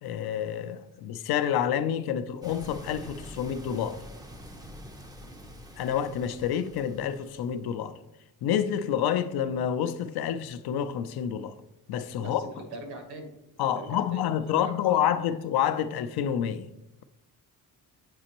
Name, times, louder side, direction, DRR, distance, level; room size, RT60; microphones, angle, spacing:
voice 1, 0.0-4.0 5.8-8.0 8.4-11.6 11.9-12.4 13.6-16.7, left 9 dB, 75° left, 0.5 m, -28 dB
sound 1, 2.4-7.7, equal, 10° right, 0.4 m, -46 dB
voice 2, 12.1-13.3 13.6-15.1, right 2 dB, 85° right, 1.5 m, -42 dB
7.6 x 5.1 x 2.9 m
cardioid pair, 155°, 38 cm